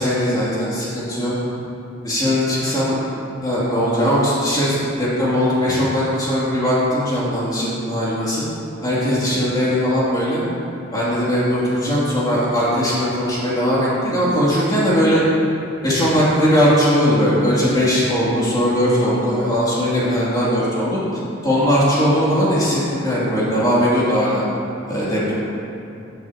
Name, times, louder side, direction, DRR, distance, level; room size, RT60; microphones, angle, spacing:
voice 1, 0.0-1.3 2.0-3.0 3.4-8.4 8.8-10.4 10.9-15.2 15.8-24.4 24.9-25.3, equal, 20° left, -9 dB, 2.8 m, -19 dB
15.0 x 9.3 x 3.0 m, 2.7 s
head